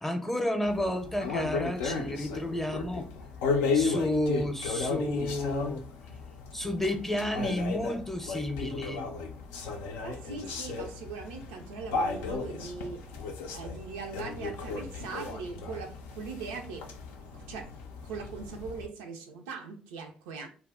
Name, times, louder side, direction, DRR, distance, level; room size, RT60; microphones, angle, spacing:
voice 1, 0.0-3.1 3.7-5.8 6.5-9.1, left 1 dB, 10° left, 0.6 m, -31 dB
sound 1, 0.7-18.9, left 4 dB, 80° left, 0.4 m, -35 dB
voice 2, 10.0-13.1 13.5-16.9 17.3-17.7 18.0-20.5, right 5 dB, 85° right, 0.4 m, -40 dB
2.3 x 2.0 x 3.4 m
hypercardioid pair, 50°, 4 cm